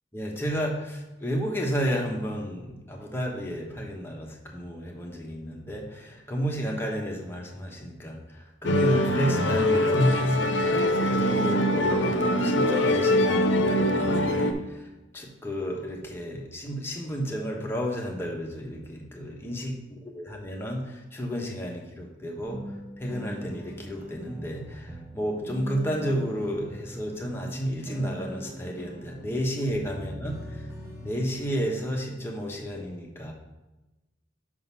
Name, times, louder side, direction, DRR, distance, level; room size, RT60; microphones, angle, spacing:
voice 1, 0.1-14.9 15.1-19.7 20.0-30.7 31.0-33.3, equal, 15° left, -1 dB, 1.0 m, -32 dB
Musical instrument, 8.6-14.5, left 1 dB, 80° left, 0.7 m, -23 dB
sound 1, 22.4-31.9, right 1 dB, 15° right, 0.9 m, -41 dB
6.0 x 3.9 x 5.5 m, 1.0 s
head